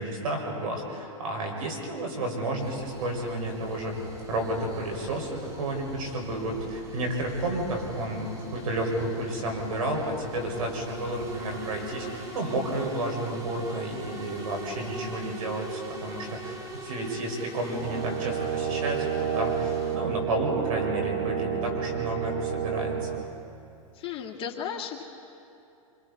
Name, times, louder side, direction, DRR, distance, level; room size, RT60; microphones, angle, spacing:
voice 1, 0.0-4.0 4.3-22.9, right 1 dB, 80° right, 1 dB, 5.4 m, -31 dB
sound 1, 2.6-20.0, right 3 dB, 20° right, 2.2 m, -41 dB
Brass instrument, 17.8-23.3, right 8 dB, 60° right, 2.1 m, -30 dB
voice 2, 23.9-25.0, left 8 dB, 30° left, -1 dB, 2.0 m, -34 dB
26.0 x 25.0 x 4.2 m, 2.7 s
hypercardioid pair, 135°, 18 cm